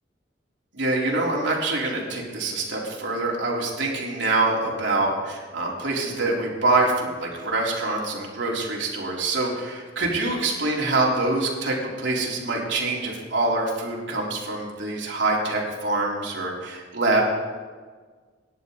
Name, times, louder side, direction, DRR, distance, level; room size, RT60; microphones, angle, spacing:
voice 1, 0.7-17.2, right 2 dB, 65° right, -3 dB, 3.9 m, -25 dB
28.0 x 11.5 x 4.1 m, 1.5 s
head